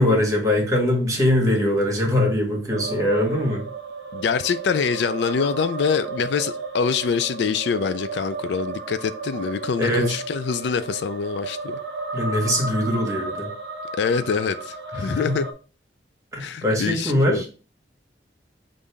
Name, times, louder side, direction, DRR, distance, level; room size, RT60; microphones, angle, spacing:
voice 1, 0.0-3.6 9.8-10.2 12.1-13.5 15.0-15.4 16.3-17.5, left 1 dB, 20° right, 1.2 m, -22 dB
sound 1, 2.7-15.5, right 3 dB, 65° right, 0.6 m, -34 dB
voice 2, 4.1-11.8 14.0-15.5 16.4-17.5, left 6 dB, 70° left, 0.3 m, -25 dB
5.4 x 2.6 x 3.3 m
head